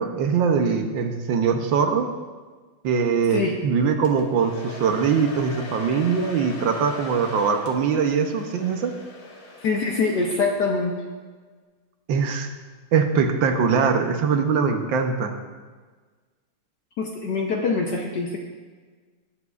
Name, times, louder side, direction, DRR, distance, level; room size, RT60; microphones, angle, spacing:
voice 1, 0.0-2.1 2.8-8.9 12.1-12.5 12.9-15.3, right 6 dB, 70° right, 6 dB, 1.4 m, -22 dB
Domestic sounds home sounds, 4.0-10.7, left 3 dB, 45° left, 1.3 m, -40 dB
voice 2, 9.6-11.0 17.0-18.4, left 4 dB, 65° left, 1 dB, 1.2 m, -24 dB
19.0 x 7.1 x 2.4 m, 1.4 s
omnidirectional pair, 2.4 m